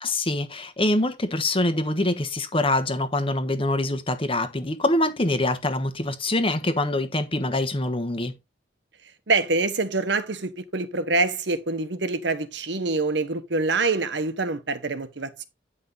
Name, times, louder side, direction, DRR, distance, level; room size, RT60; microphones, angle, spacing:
voice 1, 0.0-8.3, left 1 dB, 30° left, 1.2 m, -24 dB
voice 2, 9.3-15.4, right 3 dB, 70° right, 1.2 m, -25 dB
9.6 x 5.6 x 4.0 m
head